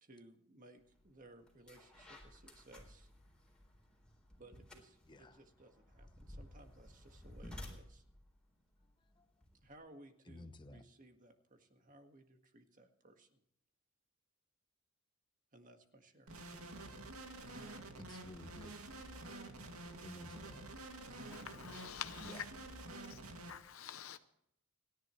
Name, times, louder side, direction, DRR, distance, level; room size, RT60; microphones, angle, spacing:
voice 1, 0.0-3.1 4.4-8.0 9.6-13.4 15.5-16.3, right 1 dB, 40° right, 1.7 m, -60 dB
sound 1, 0.9-1.1 1.5-9.7, left 1 dB, 5° left, 3.8 m, -55 dB
voice 2, 5.1-5.4 9.2-9.3 10.3-10.8 18.0-18.8 20.0-20.6 22.2-22.4, left 1 dB, 20° left, 1.0 m, -53 dB
sound 2, 16.3-23.5, right 2 dB, 85° right, 2.3 m, -49 dB
voice 3, 21.3-22.4 23.1-23.2 23.5-24.2, left 9 dB, 70° left, 0.7 m, -46 dB
30.0 x 10.5 x 3.2 m
head